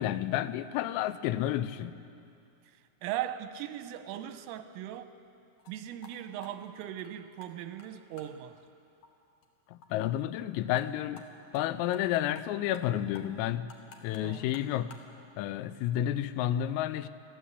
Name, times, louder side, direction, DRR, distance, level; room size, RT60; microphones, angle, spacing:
voice 1, 0.0-2.0 9.7-11.3 11.5-13.7 14.0-14.9 15.4-17.1, left 12 dB, 90° left, 3.4 m, -31 dB
voice 2, 2.7-5.1 5.7-8.6 14.2-14.5, right 11 dB, 90° right, 3.4 m, -39 dB
sound 1, 5.6-5.7 6.0-6.1 6.4-7.5 7.8-7.9 8.2-8.3 8.6-8.7 9.0-9.1 9.4-9.5 9.8-9.9 10.1-10.2 10.5-10.9 11.2-11.3 11.5-11.6 11.9-12.4 12.7-12.9 13.1-15.1, left 5 dB, 65° left, 2.0 m, -52 dB
28.5 x 13.5 x 8.1 m
omnidirectional pair, 5.9 m